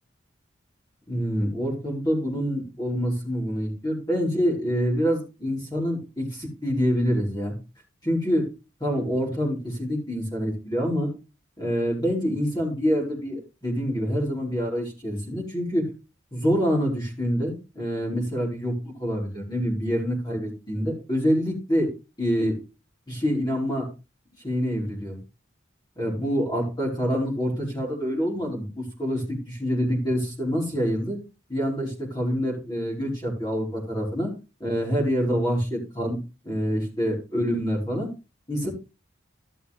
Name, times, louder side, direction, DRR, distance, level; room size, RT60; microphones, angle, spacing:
voice 1, 1.1-7.5 8.0-8.4 8.8-11.1 11.6-15.9 16.3-18.7 19.0-21.9 22.2-22.5 23.1-23.9 24.4-25.2 26.0-31.2 31.5-34.3 34.6-36.2 36.4-38.1 38.5-38.7, equal, 20° left, -3 dB, 4.8 m, -26 dB
13.5 x 6.8 x 3.5 m, 0.29 s
head